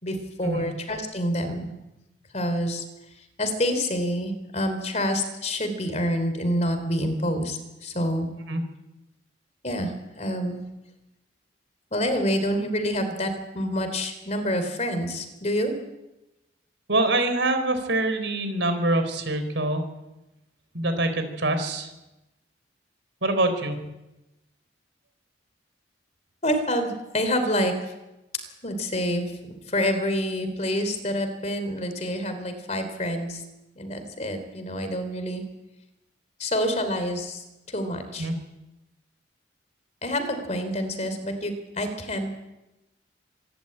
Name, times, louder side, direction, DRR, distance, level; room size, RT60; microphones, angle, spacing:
voice 1, 0.0-1.7 2.3-2.8 3.2-8.3 9.6-10.6 11.9-15.7 26.4-27.7 28.6-33.4 33.8-35.4 36.4-38.3 40.0-42.3, equal, 35° left, 8 dB, 3.5 m, -27 dB
voice 2, 16.9-19.8 20.7-21.9 23.2-23.8 38.2-38.4, right 2 dB, 75° right, 8 dB, 3.9 m, -25 dB
26.0 x 12.0 x 8.8 m, 0.98 s
head